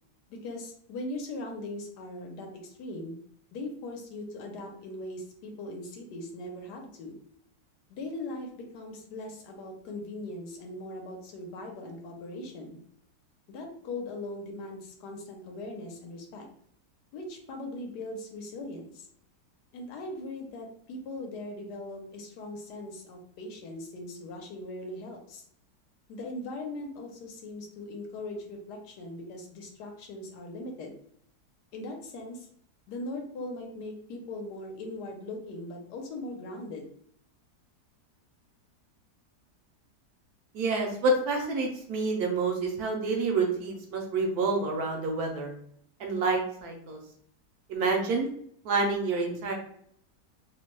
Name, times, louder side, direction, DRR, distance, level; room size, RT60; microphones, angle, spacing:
voice 1, 0.3-3.2 3.5-7.1 7.9-12.8 13.5-16.5 17.1-19.1 19.7-25.4 26.1-30.9 31.7-32.4 32.9-36.9, left 2 dB, 80° left, 2 dB, 1.2 m, -40 dB
voice 2, 40.5-45.5 46.0-47.0 47.7-48.3 48.6-49.6, right 3 dB, 70° right, 1 dB, 1.1 m, -28 dB
3.0 x 2.1 x 3.0 m, 0.66 s
omnidirectional pair, 1.8 m